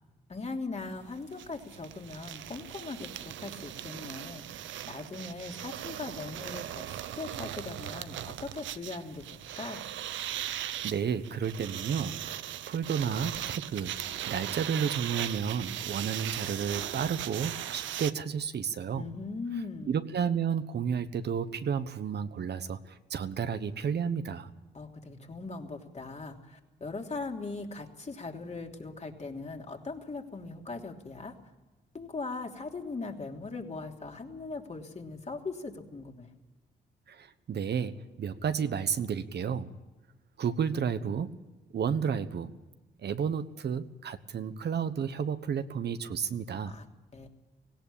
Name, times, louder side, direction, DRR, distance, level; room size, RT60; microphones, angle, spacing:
voice 1, 0.3-9.9 18.9-20.0 24.7-31.4 31.9-36.3 46.6-46.9 47.1-47.3, left 3 dB, 35° left, 2 dB, 3.1 m, -40 dB
sound 1, 0.9-1.0 1.1-18.1, right 12 dB, 85° right, 0.8 m, -39 dB
voice 2, 10.5-13.9 14.3-19.1 19.9-24.5 37.1-39.7 40.4-41.3 41.7-42.5 43.0-46.7, right 7 dB, 60° right, 11 dB, 1.2 m, -32 dB
18.0 x 17.0 x 8.7 m, 1.2 s
cardioid pair, 70°, 19 cm